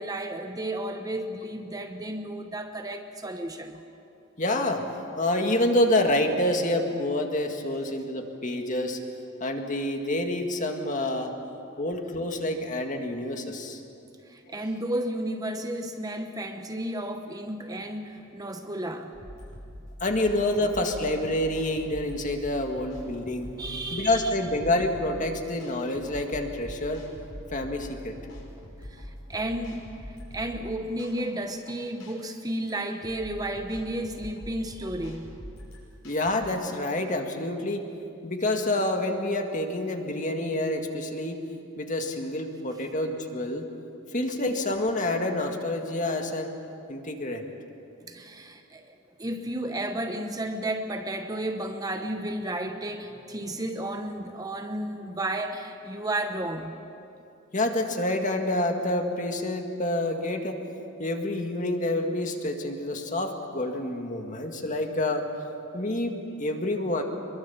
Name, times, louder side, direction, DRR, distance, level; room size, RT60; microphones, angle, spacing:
voice 1, 0.0-3.8 14.3-19.1 20.6-20.7 23.6-24.3 28.8-35.2 48.1-56.7, right 1 dB, 15° right, 5 dB, 0.9 m, -33 dB
voice 2, 4.4-4.8 5.2-9.0 9.4-11.3 11.8-13.8 20.0-23.5 23.9-27.0 27.5-28.2 36.0-37.9 38.2-41.4 41.8-43.6 44.1-46.5 46.9-47.4 57.5-60.6 61.0-65.2 65.7-67.0, left 1 dB, 35° left, 4 dB, 1.9 m, -27 dB
sound 1, 19.1-36.3, equal, 60° left, 6.1 m, -44 dB
24.5 x 22.5 x 7.1 m, 2.8 s
head